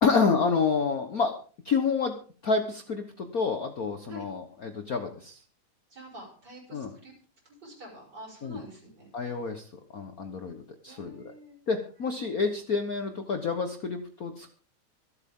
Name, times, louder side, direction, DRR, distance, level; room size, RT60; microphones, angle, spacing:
voice 1, 0.0-1.3 1.6-2.2 2.4-5.4 6.7-6.9 8.4-8.6 9.1-9.7 9.9-11.2 11.7-14.5, left 5 dB, 60° left, 6 dB, 0.9 m, -28 dB
voice 2, 5.9-7.1 7.6-9.1 10.9-11.6, right 1 dB, 30° right, -1 dB, 6.8 m, -47 dB
25.5 x 8.6 x 3.7 m, 0.40 s
omnidirectional pair, 3.4 m